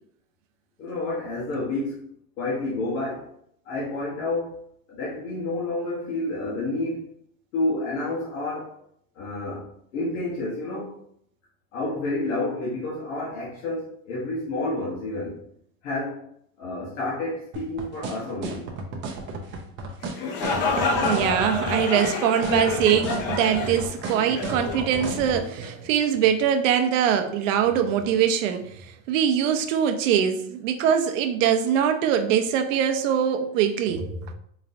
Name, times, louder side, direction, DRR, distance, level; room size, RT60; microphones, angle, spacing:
voice 1, 0.8-2.1 2.4-3.3 3.6-4.6 4.9-7.1 7.5-8.8 9.1-11.0 11.7-15.4 15.8-16.3 16.6-18.7, left 2 dB, 80° left, 1.3 m, -29 dB
sound 1, 17.5-25.4, right 3 dB, 30° right, 0.5 m, -33 dB
sound 2, 20.0-25.7, left 3 dB, 30° left, 0.4 m, -28 dB
voice 2, 20.8-34.3, right 9 dB, 65° right, 0.7 m, -23 dB
4.0 x 3.1 x 2.6 m
supercardioid pair, 155°, 41 cm